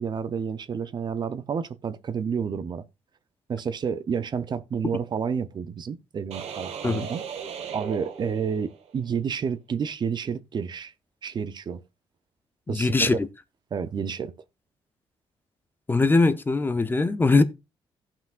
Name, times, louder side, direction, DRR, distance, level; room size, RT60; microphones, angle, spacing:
voice 1, 0.0-2.8 3.5-7.2 7.7-10.9 11.2-11.8 12.7-13.1 13.7-14.3, right 6 dB, 45° right, 0.7 m, -30 dB
sound 1, 6.3-8.9, right 7 dB, 85° right, 1.5 m, -37 dB
voice 2, 12.7-13.3 15.9-17.4, left 3 dB, 20° left, 0.6 m, -21 dB
16.0 x 5.9 x 2.5 m
cardioid pair, 110°, 10 cm